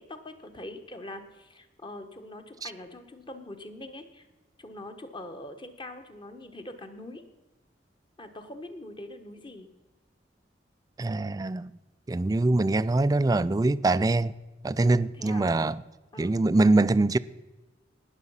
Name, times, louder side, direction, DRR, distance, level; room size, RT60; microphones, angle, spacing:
voice 1, 0.0-4.3 4.6-7.2 8.2-9.7 15.1-15.5 16.1-16.3, left 1 dB, 25° left, 1.2 m, -43 dB
voice 2, 11.0-11.7 12.1-14.3 14.6-15.8 16.2-17.2, right 2 dB, 20° right, 0.3 m, -23 dB
19.0 x 6.9 x 5.6 m
head